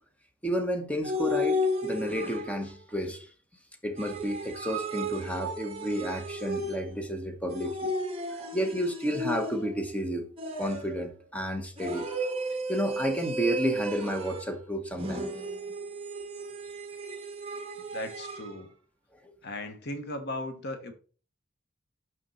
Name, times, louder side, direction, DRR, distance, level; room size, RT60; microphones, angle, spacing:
voice 1, 0.4-3.3 3.8-7.9 8.4-10.3 10.6-12.2 12.7-15.3 19.2-19.3, equal, 5° left, 0.9 m, -31 dB
sound 1, 1.0-2.8 4.0-7.0 7.5-9.9 10.4-11.1 11.8-14.6 15.0-18.5, equal, 30° right, 1.4 m, -34 dB
voice 2, 17.9-18.7 19.4-20.9, left 1 dB, 60° left, 1.0 m, -37 dB
6.3 x 6.2 x 4.1 m
head